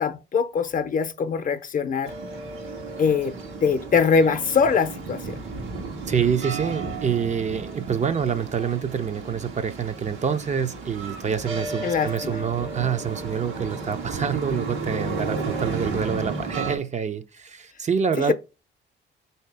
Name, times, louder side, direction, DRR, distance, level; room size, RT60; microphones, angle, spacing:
voice 1, 0.0-2.1 3.0-3.3 3.6-5.4 11.8-12.4, left 5 dB, 40° left, 0.6 m, -22 dB
sound 1, 2.0-16.8, right 3 dB, 90° right, 1.3 m, -33 dB
voice 2, 6.1-18.3, right 7 dB, 35° right, 0.5 m, -26 dB
3.9 x 2.8 x 3.4 m
cardioid pair, 90°, 20 cm